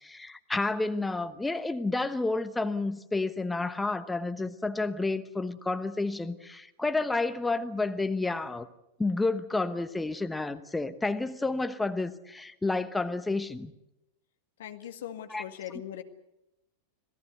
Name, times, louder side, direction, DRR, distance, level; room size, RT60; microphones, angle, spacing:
voice 1, 0.0-8.7 9.0-13.7 15.3-15.4, left 3 dB, 5° left, 1.1 m, -30 dB
voice 2, 14.6-16.0, left 10 dB, 60° left, 1.9 m, -40 dB
26.5 x 17.0 x 8.0 m
figure-of-eight pair, 90°, 0 cm